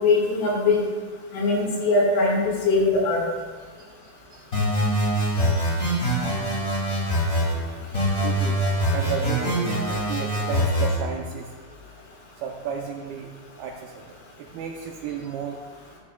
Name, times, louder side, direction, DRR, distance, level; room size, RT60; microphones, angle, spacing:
voice 1, 0.0-0.8 1.3-3.2, left 3 dB, 85° left, -3 dB, 4.1 m, -21 dB
voice 2, 3.8-4.5 8.2-8.6 8.9-9.6 9.9-11.5 12.4-13.3 13.6-15.6, right 7 dB, 85° right, 0 dB, 2.2 m, -35 dB
sound 1, 4.5-7.5 7.9-11.0, equal, 40° left, 1.2 m, -24 dB
13.5 x 7.3 x 2.3 m, 1.5 s
omnidirectional pair, 4.9 m